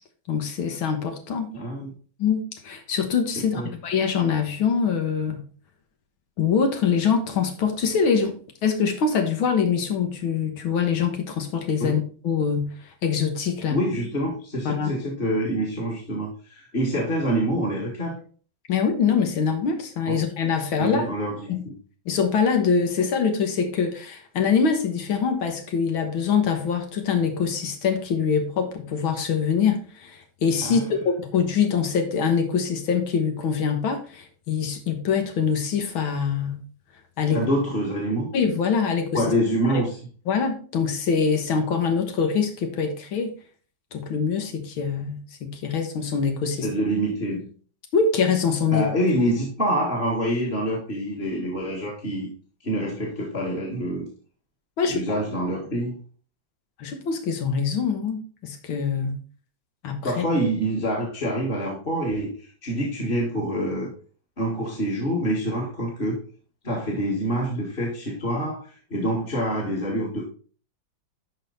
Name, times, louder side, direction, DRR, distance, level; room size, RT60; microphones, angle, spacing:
voice 1, 0.3-1.5 2.2-5.4 6.4-12.7 13.0-13.8 14.7-14.9 18.7-21.1 21.5-21.6 22.1-36.6 37.2-37.5 38.3-39.2 39.7-39.8 40.3-43.3 43.9-46.7 47.9-48.9 54.8-55.3 56.8-59.2 59.8-60.2, left 6 dB, 85° left, 5 dB, 2.1 m, -24 dB
voice 2, 1.5-1.9 3.5-3.7 11.8-12.0 13.7-18.2 20.1-20.2 20.8-21.7 30.6-30.9 37.3-38.3 39.1-40.0 46.6-47.5 48.7-52.3 52.6-54.1 54.9-56.0 60.0-63.9 64.4-66.1 66.6-70.3, equal, 30° left, -4 dB, 2.0 m, -26 dB
12.0 x 4.3 x 4.1 m, 0.41 s
omnidirectional pair, 2.2 m